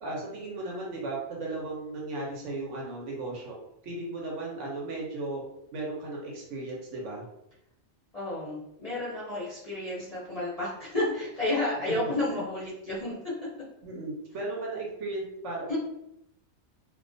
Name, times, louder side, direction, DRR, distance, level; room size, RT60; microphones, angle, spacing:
voice 1, 0.0-3.6 3.8-5.4 5.7-7.2 11.9-12.0 12.3-12.4 13.8-15.8, right 2 dB, 65° right, -3 dB, 0.9 m, -36 dB
voice 2, 8.1-13.3 15.7-15.8, left 2 dB, 40° left, -9 dB, 0.5 m, -31 dB
2.3 x 2.2 x 2.5 m, 0.82 s
omnidirectional pair, 1.4 m